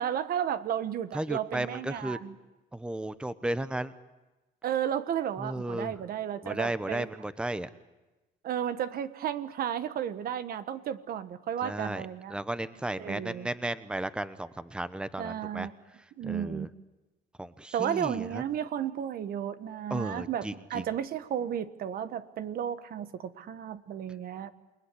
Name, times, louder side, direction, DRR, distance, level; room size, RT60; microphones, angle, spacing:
voice 1, 0.0-2.3 4.6-7.1 8.4-12.3 13.0-13.5 15.2-15.7 16.2-16.7 17.7-24.5, right 9 dB, 60° right, 12 dB, 1.4 m, -33 dB
voice 2, 1.1-2.2 2.7-3.9 5.4-5.9 6.4-7.7 11.6-15.7 16.2-16.7 17.4-18.4 19.9-20.8, right 1 dB, 5° right, 13 dB, 1.0 m, -34 dB
28.5 x 20.0 x 9.9 m, 1.1 s
cardioid pair, 110°, 17 cm